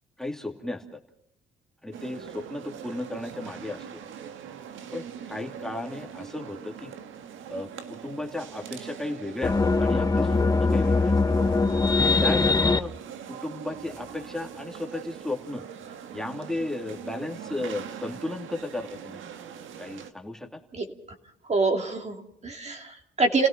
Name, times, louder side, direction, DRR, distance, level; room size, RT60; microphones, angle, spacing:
voice 1, 0.2-0.8 1.8-3.9 4.9-6.9 7.5-11.1 12.2-12.9 13.3-15.7 16.1-19.2 19.8-20.6, left 2 dB, ahead, 1 dB, 2.6 m, -34 dB
sound 1, 1.9-20.1, right 8 dB, 80° right, 1.6 m, -42 dB
sound 2, 9.4-12.8, left 3 dB, 20° left, 0.9 m, -22 dB
voice 2, 21.5-23.5, right 3 dB, 35° right, 3 dB, 2.8 m, -26 dB
30.0 x 17.0 x 5.9 m, 0.70 s
cardioid pair, 90°, 20 cm